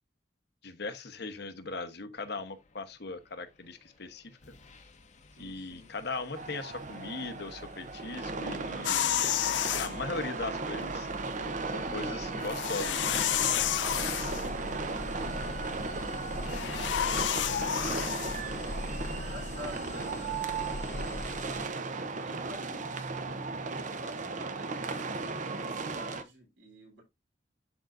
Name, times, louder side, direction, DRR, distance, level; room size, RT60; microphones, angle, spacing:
voice 1, 0.6-4.5 5.4-9.5 9.7-11.1 11.7-13.2, left 3 dB, 65° left, 1.0 m, -39 dB
sound 1, 3.9-4.1 4.4-21.7, left 1 dB, 45° left, 0.9 m, -43 dB
voice 2, 5.4-5.9 13.9-18.2 18.8-21.0 21.7-27.0, equal, 85° right, 3.6 m, -50 dB
sound 2, 6.3-26.2, right 3 dB, 45° right, 0.7 m, -36 dB
sound 3, 8.8-9.9 12.4-14.5 16.4-18.4, left 11 dB, 85° left, 0.4 m, -30 dB
12.0 x 3.9 x 2.6 m
head